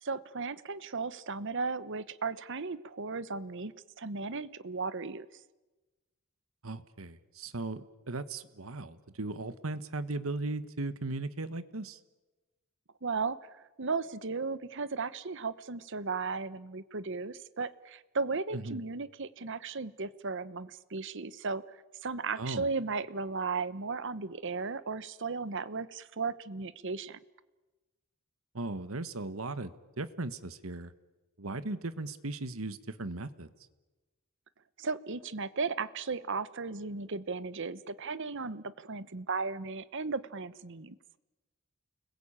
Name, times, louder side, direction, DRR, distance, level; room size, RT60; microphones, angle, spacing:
voice 1, 0.0-3.7 4.0-5.3 13.0-27.2 34.8-41.0, right 4 dB, 60° right, 16 dB, 1.0 m, -35 dB
voice 2, 6.6-12.0 18.5-18.8 22.4-22.7 28.5-30.9 31.4-33.5, right 2 dB, 80° right, 13 dB, 1.4 m, -37 dB
29.5 x 21.0 x 8.9 m, 1.2 s
head